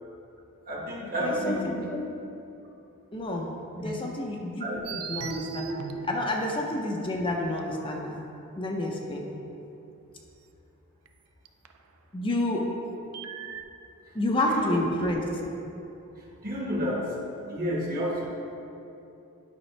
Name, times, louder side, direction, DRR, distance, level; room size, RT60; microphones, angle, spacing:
voice 1, 0.7-1.7 3.8-3.9 4.6-4.9 14.1-14.2 14.4-14.8 16.2-17.1 17.5-18.3, equal, 40° right, -3 dB, 1.4 m, -31 dB
voice 2, 1.2-2.1 3.1-3.5 3.8-5.7 6.1-8.2 8.6-9.2 12.1-12.7 14.1-15.4, left 1 dB, 25° left, 0 dB, 0.6 m, -29 dB
sound 1, 4.8-7.1 7.6-7.7 11.0-11.1 11.4-11.8 13.1-13.6, right 5 dB, 80° right, 0.5 m, -37 dB
11.0 x 5.4 x 3.3 m, 2.8 s
head